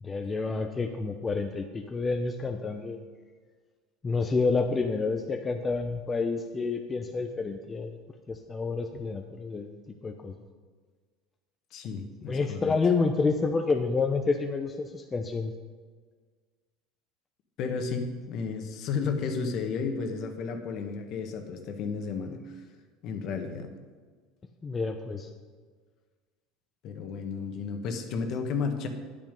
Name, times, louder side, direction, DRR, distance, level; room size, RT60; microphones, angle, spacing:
voice 1, 0.0-3.0 4.0-8.0 8.3-9.8 10.0-10.3 12.3-15.5 24.6-25.3, left 4 dB, 20° left, 4 dB, 0.7 m, -29 dB
voice 2, 11.7-12.7 17.6-22.6 23.0-23.7 26.8-28.9, left 5 dB, 55° left, 6 dB, 1.5 m, -33 dB
10.0 x 9.1 x 5.3 m, 1.5 s
supercardioid pair, 125°, 0 cm